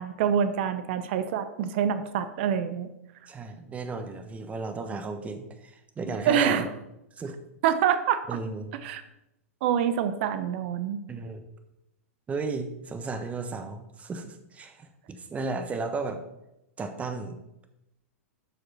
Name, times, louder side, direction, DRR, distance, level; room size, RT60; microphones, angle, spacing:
voice 1, 0.0-2.9 6.2-6.7 7.6-8.2 8.8-9.0 9.6-11.0, right 8 dB, 50° right, 11 dB, 0.8 m, -26 dB
voice 2, 3.3-6.7 7.2-7.4 8.3-8.8 11.1-11.4 12.3-16.2 16.8-17.4, right 4 dB, 15° right, 8 dB, 1.2 m, -34 dB
12.0 x 6.6 x 4.1 m, 0.88 s
figure-of-eight pair, 100°, 8 cm